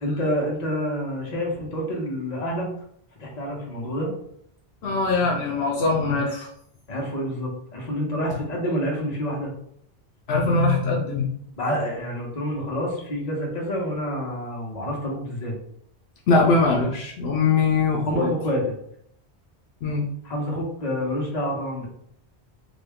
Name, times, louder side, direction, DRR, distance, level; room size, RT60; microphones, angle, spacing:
voice 1, 0.0-2.7 3.2-4.1 6.9-9.5 11.6-15.5 18.1-18.7 20.2-21.9, equal, 40° left, -2 dB, 1.1 m, -28 dB
voice 2, 4.8-6.5 10.3-11.3 16.3-18.3 19.8-20.0, left 3 dB, 75° left, -2 dB, 0.8 m, -21 dB
3.6 x 2.2 x 3.5 m, 0.69 s
omnidirectional pair, 1.1 m